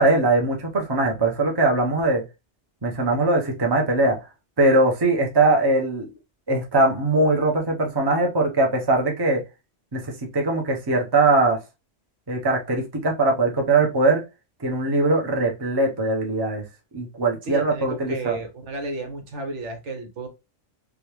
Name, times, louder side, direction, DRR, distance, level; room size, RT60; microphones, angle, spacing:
voice 1, 0.0-2.2 2.8-4.2 4.6-6.1 6.5-9.4 9.9-11.6 12.3-14.2 14.6-16.6 16.9-18.4, right 2 dB, 25° right, 0.7 m, -21 dB
voice 2, 17.4-20.3, right 2 dB, 70° right, 1.2 m, -32 dB
3.6 x 2.3 x 2.9 m
omnidirectional pair, 1.3 m